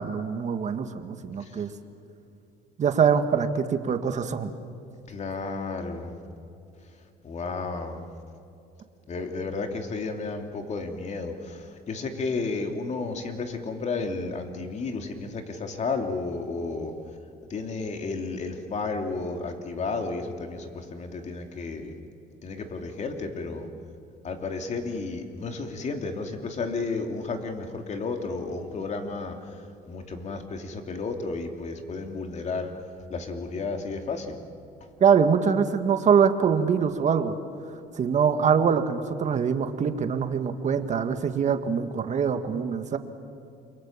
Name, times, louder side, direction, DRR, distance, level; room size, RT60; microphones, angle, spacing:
voice 1, 0.0-1.7 2.8-4.5 35.0-37.3 38.0-43.0, right 6 dB, 45° right, 8 dB, 1.9 m, -23 dB
voice 2, 5.1-6.1 7.2-8.0 9.1-16.9 17.4-21.9 22.4-23.7 24.2-32.7 33.1-34.4, left 3 dB, 45° left, 4 dB, 2.9 m, -32 dB
29.0 x 23.5 x 7.5 m, 2.7 s
cardioid pair, 110°, 17 cm